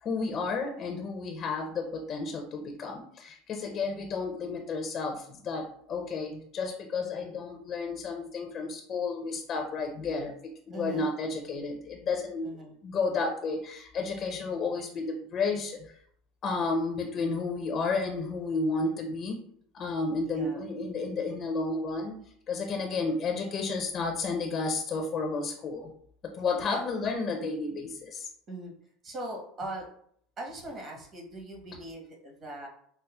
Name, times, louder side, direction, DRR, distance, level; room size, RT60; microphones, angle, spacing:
voice 1, 0.0-15.9 16.4-19.4 19.7-22.2 22.5-25.9 26.2-28.3, left 3 dB, 40° left, 2 dB, 0.5 m, -32 dB
voice 2, 10.7-11.1 12.4-12.8 20.2-20.6 26.7-27.1 28.5-28.7 29.0-29.9 30.4-32.7, right 1 dB, 35° right, 0 dB, 1.1 m, -40 dB
5.4 x 2.0 x 2.3 m, 0.64 s
supercardioid pair, 120°, 0 cm